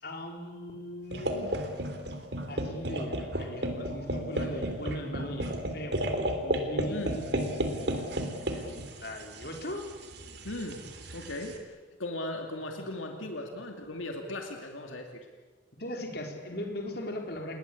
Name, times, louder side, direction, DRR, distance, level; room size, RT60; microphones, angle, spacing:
voice 1, 0.0-1.5 2.5-6.0 6.4-8.2 8.5-9.9 15.8-17.6, left 1 dB, 50° left, 3 dB, 4.3 m, -39 dB
sound 1, 1.1-11.5, right 1 dB, 55° right, 3.2 m, -33 dB
voice 2, 6.9-7.2 10.4-10.8 11.1-15.3, left 1 dB, 85° left, 3 dB, 2.6 m, -38 dB
28.5 x 21.5 x 8.4 m, 1.4 s
head